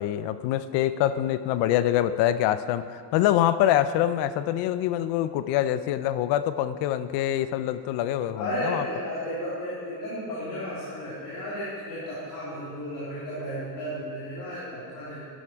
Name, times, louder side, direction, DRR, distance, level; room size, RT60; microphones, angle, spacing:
voice 1, 0.0-8.8, left 12 dB, 65° left, 13 dB, 0.7 m, -25 dB
voice 2, 8.4-15.2, equal, 45° left, -10 dB, 3.6 m, -33 dB
12.0 x 11.5 x 4.7 m, 2.2 s
cardioid pair, 145°, 45 cm